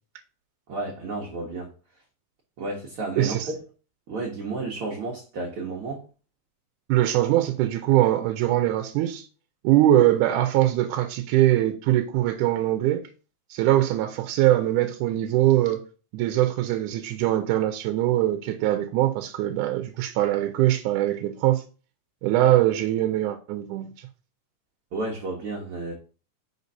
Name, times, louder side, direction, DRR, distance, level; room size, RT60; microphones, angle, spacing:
voice 1, 0.7-1.7 2.6-3.6 4.1-6.0 24.9-25.9, right 3 dB, 55° right, 1.7 m, -32 dB
voice 2, 3.2-3.5 6.9-9.3 9.6-13.1 13.5-15.8 16.1-21.6 22.2-23.9, right 14 dB, 80° right, 2.1 m, -22 dB
5.1 x 4.0 x 5.4 m
omnidirectional pair, 3.7 m